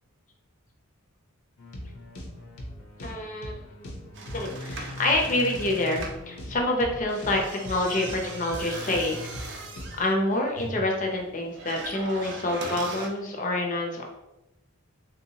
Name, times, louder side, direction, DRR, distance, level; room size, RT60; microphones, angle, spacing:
sound 1, 1.6-10.1, left 1 dB, 75° left, 0.7 m, -40 dB
voice 1, 3.0-3.6 4.3-9.5 10.0-14.0, left 1 dB, 35° left, 1 dB, 0.6 m, -27 dB
sound 2, 4.1-6.2 7.0-13.1, right 3 dB, 50° right, 0.5 m, -40 dB
3.6 x 2.7 x 2.8 m, 0.91 s
head